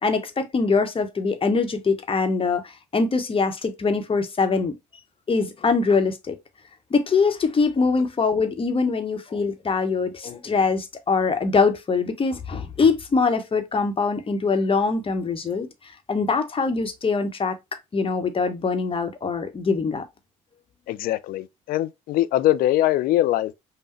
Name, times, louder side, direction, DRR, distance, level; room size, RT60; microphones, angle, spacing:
voice 1, 0.0-4.7 5.3-6.4 6.9-15.7 16.1-17.5 17.9-20.0, left 4 dB, 35° left, 1.0 m, -23 dB
voice 2, 20.9-23.6, left 14 dB, 65° left, 0.5 m, -22 dB
5.4 x 2.2 x 3.0 m
hypercardioid pair, 55°, 16 cm